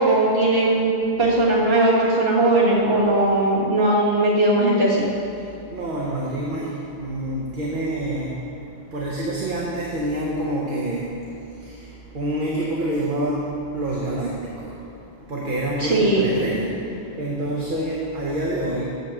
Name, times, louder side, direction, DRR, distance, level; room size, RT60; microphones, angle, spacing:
voice 1, 0.0-5.1 15.8-16.6, right 2 dB, 75° right, -6 dB, 1.9 m, -19 dB
voice 2, 5.3-18.8, right 1 dB, 55° right, -4 dB, 1.0 m, -28 dB
7.2 x 5.4 x 6.5 m, 2.6 s
omnidirectional pair, 1.0 m